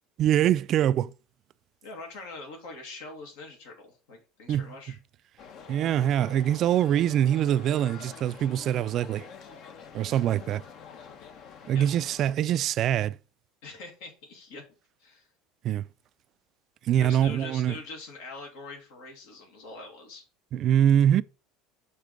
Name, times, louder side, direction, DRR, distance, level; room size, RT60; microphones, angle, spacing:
voice 1, 0.2-1.1 4.5-4.7 5.7-9.3 9.9-10.6 11.7-13.2 15.6-15.8 16.9-17.8 20.5-21.2, right 10 dB, 50° right, 0.3 m, -24 dB
voice 2, 1.8-5.0 11.1-11.2 11.7-11.9 13.6-14.6 15.0-15.3 16.9-20.2, left 3 dB, 75° left, 2.2 m, -43 dB
sound 1, 5.4-12.4, left 6 dB, 55° left, 1.0 m, -47 dB
6.8 x 3.4 x 5.0 m
supercardioid pair, 95°, 0 cm